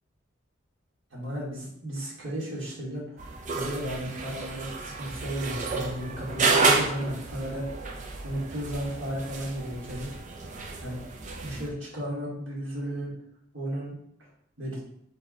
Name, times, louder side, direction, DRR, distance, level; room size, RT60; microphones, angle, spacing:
voice 1, 1.1-3.2 3.5-7.7 8.2-10.1 10.8-11.0 11.4-13.1 13.5-14.0 14.6-14.8, right 1 dB, 70° right, -6 dB, 1.8 m, -34 dB
sound 1, 3.2-11.7, right 3 dB, 40° right, 0.6 m, -30 dB
4.0 x 3.5 x 3.7 m, 0.72 s
head